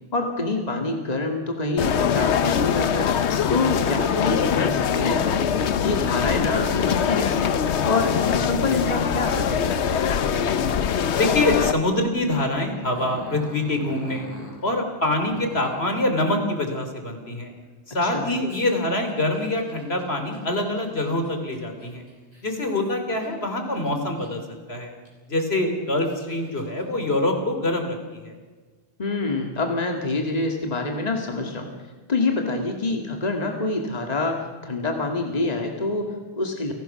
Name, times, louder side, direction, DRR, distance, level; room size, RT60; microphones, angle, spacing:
voice 1, 0.1-3.1 3.5-7.6 7.8-10.0 18.0-18.2 29.0-31.7 32.1-36.7, left 3 dB, 40° left, 2 dB, 2.2 m, -26 dB
sound 1, 1.8-11.7, left 7 dB, 90° left, 1.1 m, -23 dB
voice 2, 11.2-14.3 14.6-17.5 17.9-22.0 22.4-24.4 24.7-24.9 25.3-28.3, left 1 dB, 70° left, 5 dB, 3.4 m, -25 dB
Growling, 12.9-14.6 15.3-15.9 18.5-23.3 23.7-24.5 25.1-25.2 25.8-26.8, equal, 35° right, 6.3 m, -42 dB
30.0 x 18.5 x 5.8 m, 1.4 s
omnidirectional pair, 1.1 m